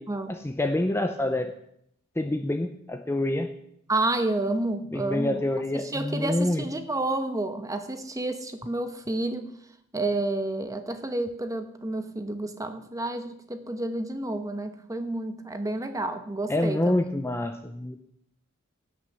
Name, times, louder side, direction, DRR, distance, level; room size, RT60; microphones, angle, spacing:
voice 1, 0.3-1.5 2.2-3.5 4.9-6.7 16.5-18.1, left 1 dB, 10° left, 7 dB, 0.5 m, -27 dB
voice 2, 3.9-5.4 5.7-9.4 9.9-17.0, right 2 dB, 15° right, 8 dB, 1.1 m, -30 dB
17.0 x 6.5 x 6.8 m, 0.74 s
head